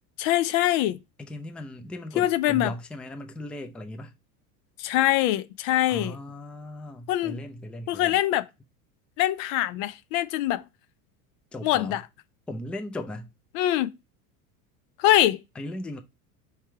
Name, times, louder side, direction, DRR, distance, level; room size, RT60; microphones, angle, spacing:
voice 1, 0.2-1.0 2.2-2.7 4.8-6.2 7.1-7.4 7.9-8.4 9.2-10.6 11.6-12.0 13.5-13.9 15.0-15.4, left 14 dB, 60° left, 0.5 m, -23 dB
voice 2, 1.2-4.1 5.9-8.2 11.5-12.0 12.5-13.3 15.6-16.0, left 1 dB, ahead, 0.4 m, -37 dB
3.4 x 3.2 x 4.5 m
hypercardioid pair, 85°, 45 cm